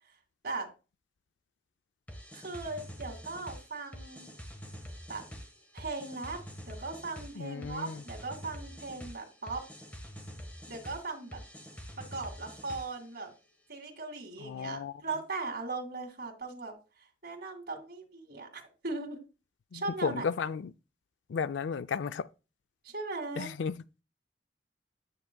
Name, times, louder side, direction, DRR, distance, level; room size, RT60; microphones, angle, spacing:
sound 1, 2.1-13.1, equal, 10° left, 1.2 m, -46 dB
voice 1, 2.3-4.3 5.1-5.2 5.7-9.6 10.7-11.4 12.1-13.3 13.7-16.7 17.2-19.2 19.7-20.2 22.8-23.5, right 3 dB, 60° right, 2.1 m, -38 dB
voice 2, 7.4-8.0 14.4-15.0 19.7-20.7 21.3-22.3 23.4-23.8, left 6 dB, 85° left, 0.4 m, -34 dB
9.3 x 7.1 x 2.2 m
head